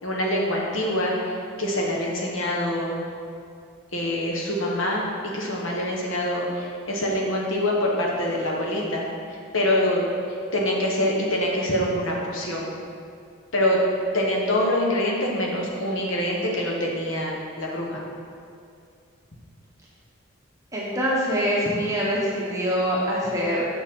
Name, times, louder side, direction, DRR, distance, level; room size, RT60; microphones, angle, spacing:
voice 1, 0.0-3.0 3.9-5.0 5.3-9.1 9.5-12.7 13.5-13.8 14.1-18.0, left 1 dB, 65° left, -3 dB, 1.3 m, -25 dB
voice 2, 20.7-23.7, equal, 15° right, -5 dB, 1.0 m, -24 dB
7.1 x 5.9 x 3.8 m, 2.4 s
head